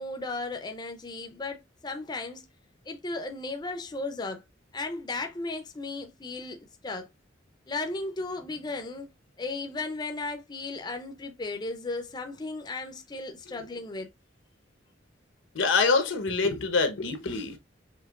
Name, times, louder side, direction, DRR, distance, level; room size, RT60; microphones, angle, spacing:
voice 1, 0.0-2.4 2.9-4.4 4.7-7.1 7.7-9.1 9.4-14.1, left 3 dB, 20° left, 0.5 m, -35 dB
voice 2, 15.5-17.6, left 4 dB, 85° left, 0.9 m, -25 dB
5.6 x 2.9 x 2.3 m
head